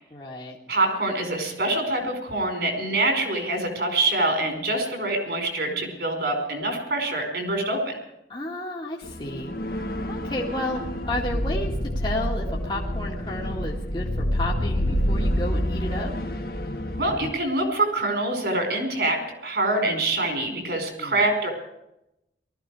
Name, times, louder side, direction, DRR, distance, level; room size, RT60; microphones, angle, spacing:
voice 1, 0.1-0.6 8.3-9.6 10.1-16.1 21.0-21.2, left 1 dB, 25° left, -3 dB, 1.9 m, -32 dB
voice 2, 0.7-7.9 17.0-21.5, right 2 dB, 65° right, 4 dB, 4.7 m, -25 dB
sound 1, 9.0-17.3, equal, 55° left, 1.9 m, -28 dB
19.5 x 14.0 x 4.8 m, 0.83 s
head